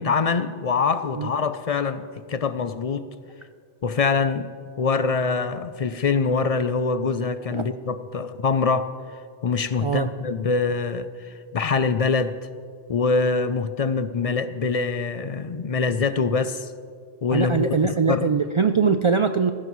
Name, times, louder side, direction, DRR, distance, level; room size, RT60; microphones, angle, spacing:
voice 1, 0.0-3.1 3.8-4.5 4.8-8.9 9.4-12.4 12.9-16.7 17.2-18.3, left 4 dB, 45° left, 0.5 m, -24 dB
voice 2, 17.3-19.5, right 5 dB, 50° right, 0.3 m, -22 dB
19.0 x 16.0 x 3.1 m
omnidirectional pair, 1.0 m